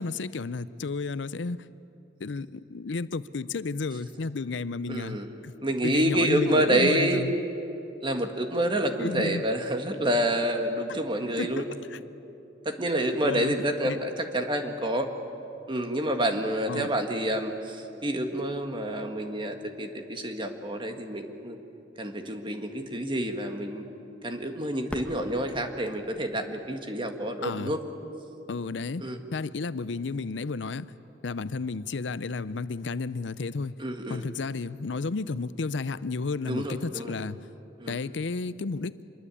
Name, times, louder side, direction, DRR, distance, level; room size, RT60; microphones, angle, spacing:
voice 1, 0.0-1.6 2.2-5.2 5.4-5.5 5.8-7.3 9.0-9.4 11.4-11.6 11.9-12.0 13.2-13.5 13.8-14.0 16.7-16.9 27.4-27.7 28.5-29.0 29.3-30.9 31.2-33.7 34.1-37.4 37.9-39.0, left 4 dB, 80° left, 16 dB, 0.6 m, -32 dB
voice 2, 4.9-5.3 5.6-7.3 8.0-11.7 12.7-15.1 15.7-21.6 22.0-23.8 24.2-27.8 29.0-29.2 33.8-34.2 36.4-37.1 37.8-38.0, right 1 dB, 25° right, 5 dB, 1.8 m, -28 dB
Fireworks, 24.9-27.6 28.3-28.4 29.1-29.6 31.5-31.6, equal, 10° left, 1.7 m, -44 dB
26.0 x 22.0 x 8.5 m, 2.9 s
head